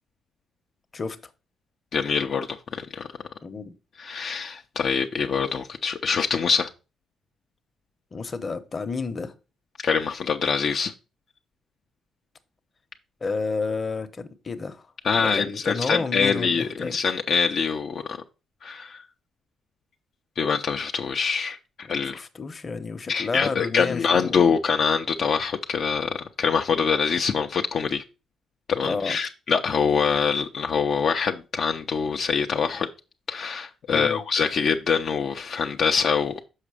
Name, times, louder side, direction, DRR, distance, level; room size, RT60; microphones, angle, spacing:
voice 1, 1.9-3.1 4.0-6.7 9.8-10.9 15.0-18.0 18.6-19.0 20.4-22.2 23.1-28.0 28.7-32.9 33.3-36.3, left 6 dB, 60° left, 0.6 m, -24 dB
voice 2, 3.4-3.7 8.1-9.3 13.2-14.8 15.1-17.0 22.0-24.4 28.8-29.2 33.9-34.2, left 4 dB, 35° left, 0.9 m, -30 dB
6.5 x 5.1 x 4.9 m
cardioid pair, 90°, 0 cm